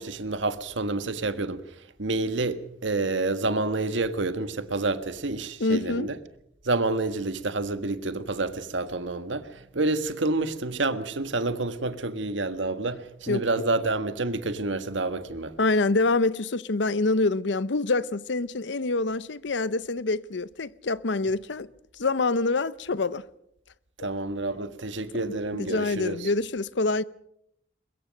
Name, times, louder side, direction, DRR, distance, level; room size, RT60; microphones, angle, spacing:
voice 1, 0.0-6.2 6.6-15.5 24.0-26.3, right 2 dB, 80° right, 1.5 m, -28 dB
voice 2, 5.6-6.1 13.3-13.4 15.6-21.7 22.0-23.2 25.5-27.0, left 3 dB, 75° left, 0.7 m, -26 dB
22.5 x 21.5 x 6.5 m
head